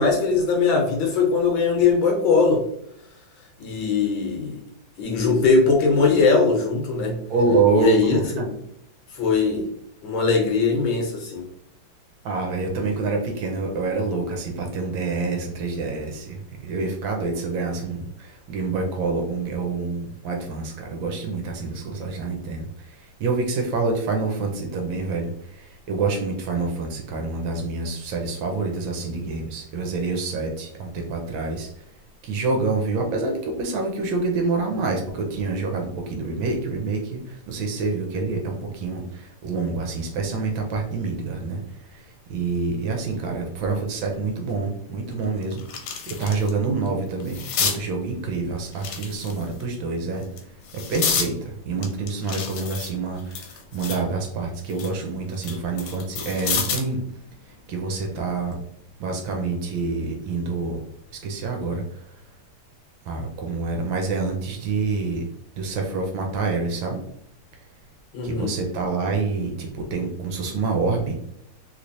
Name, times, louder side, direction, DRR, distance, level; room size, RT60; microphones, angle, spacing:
voice 1, 0.0-2.6 3.6-4.6 5.0-7.2 7.7-8.6 9.1-9.7 10.0-11.5 68.1-68.5, left 4 dB, 70° left, 1 dB, 1.4 m, -20 dB
voice 2, 7.3-8.4 12.2-31.8 32.2-50.3 50.7-57.0 57.5-58.6 59.0-60.8 61.1-62.0 63.1-65.2 65.6-67.0 68.2-71.2, right 3 dB, 75° right, 2 dB, 1.3 m, -27 dB
sound 1, 44.5-44.6 45.1-46.5 46.9-47.8 48.7-49.6 50.2-51.3 51.8-54.1 54.5-56.9 58.3-58.5, left 6 dB, 85° left, 1.5 m, -29 dB
3.2 x 3.1 x 2.6 m, 0.74 s
omnidirectional pair, 2.4 m